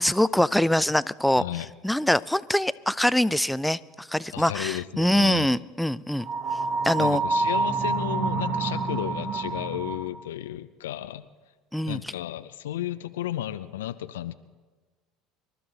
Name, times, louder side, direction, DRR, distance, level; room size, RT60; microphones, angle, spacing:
voice 1, 0.0-6.3 6.8-7.2 11.7-12.1, left 1 dB, 5° left, 17 dB, 0.5 m, -24 dB
voice 2, 1.4-1.7 4.3-5.5 7.0-11.3 11.9-14.3, left 13 dB, 85° left, 12 dB, 0.4 m, -33 dB
sound 1, 6.2-10.2, right 3 dB, 55° right, 1.6 m, -27 dB
26.0 x 12.5 x 4.0 m, 1.3 s
hypercardioid pair, 75°, 0 cm